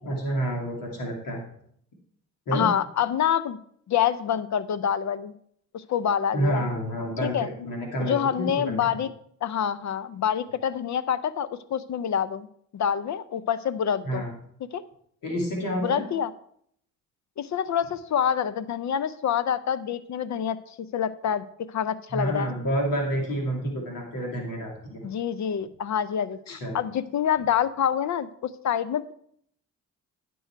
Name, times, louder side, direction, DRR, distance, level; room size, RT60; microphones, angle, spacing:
voice 1, 0.0-1.4 2.5-2.7 6.3-8.8 14.0-14.3 15.2-16.0 22.1-25.1 26.5-26.8, right 1 dB, 75° left, 0 dB, 2.6 m, -29 dB
voice 2, 2.5-3.6 3.9-5.3 5.7-6.6 7.2-7.5 8.0-9.1 9.4-12.5 12.7-14.2 14.7-14.8 15.8-16.3 17.4-22.5 25.0-29.1, left 8 dB, 55° left, 15 dB, 0.7 m, -27 dB
10.0 x 6.3 x 4.5 m, 0.66 s
supercardioid pair, 55°, 33 cm